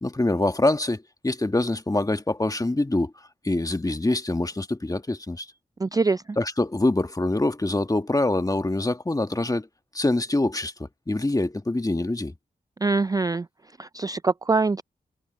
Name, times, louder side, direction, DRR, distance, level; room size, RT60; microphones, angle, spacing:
voice 1, 0.0-3.1 3.4-5.5 6.4-9.7 9.9-12.3, left 2 dB, 20° left, 1.4 m, -25 dB
voice 2, 5.8-6.2 12.8-13.4 13.8-14.8, right 3 dB, 20° right, 0.3 m, -23 dB
cardioid pair, 45°, 17 cm